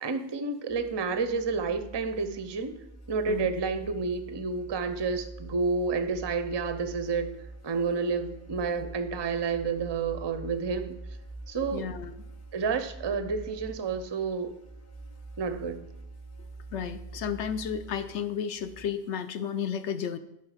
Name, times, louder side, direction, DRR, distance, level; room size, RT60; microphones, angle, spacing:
voice 1, 0.0-2.8 3.1-7.3 7.6-11.0 11.5-11.9 12.5-14.5 15.4-15.9, right 4 dB, 35° right, 9 dB, 0.4 m, -30 dB
sound 1, 0.7-18.9, right 2 dB, 15° left, 0.6 m, -45 dB
voice 2, 11.7-12.1 16.7-20.2, left 7 dB, 70° left, 11 dB, 0.9 m, -32 dB
10.0 x 5.7 x 4.9 m, 0.82 s
omnidirectional pair, 1.2 m